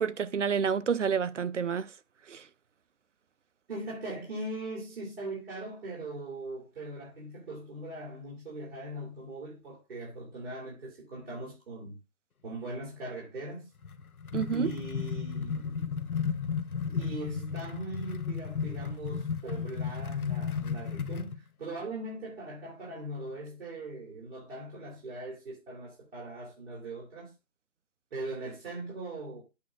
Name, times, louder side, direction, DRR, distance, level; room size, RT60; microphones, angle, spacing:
voice 1, 0.0-1.9 2.3-2.4 14.3-14.7, right 7 dB, 60° right, 0.6 m, -29 dB
voice 2, 3.7-12.0 12.4-13.7 14.5-16.1 16.9-27.3 28.1-29.4, right 2 dB, 45° right, 3.6 m, -40 dB
sound 1, 13.8-21.4, left 6 dB, 90° left, 1.0 m, -34 dB
8.4 x 3.3 x 6.5 m
hypercardioid pair, 165°, 42 cm